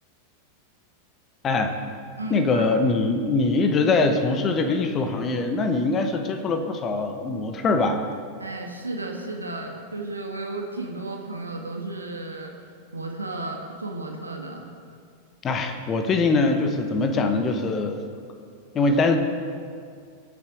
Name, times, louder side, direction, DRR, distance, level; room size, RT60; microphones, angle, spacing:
voice 1, 1.4-1.8 2.3-8.1 15.4-18.0 18.7-19.2, left 3 dB, 25° left, 7 dB, 1.1 m, -23 dB
voice 2, 2.2-2.8 8.4-12.5 12.9-14.7, right 2 dB, 80° right, 1 dB, 1.5 m, -33 dB
21.5 x 7.5 x 4.9 m, 2.3 s
figure-of-eight pair, 90°, 0 cm